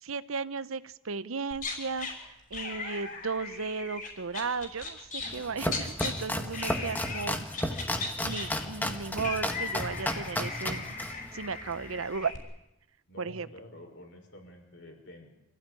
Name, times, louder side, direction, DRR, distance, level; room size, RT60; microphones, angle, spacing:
voice 1, 0.0-2.1 2.5-7.5 8.2-10.9 11.3-12.3 13.2-13.5, right 4 dB, 90° right, 15 dB, 0.9 m, -35 dB
sound 1, 1.5-2.1 2.5-6.1 6.5-7.3 7.5-12.4, left 4 dB, 45° left, 5.9 m, -38 dB
Domestic sounds home sounds, 5.2-12.2, left 1 dB, 10° left, 1.6 m, -34 dB
voice 2, 13.1-15.3, left 1 dB, 60° left, 3 dB, 5.8 m, -49 dB
26.5 x 16.5 x 9.9 m, 0.92 s
head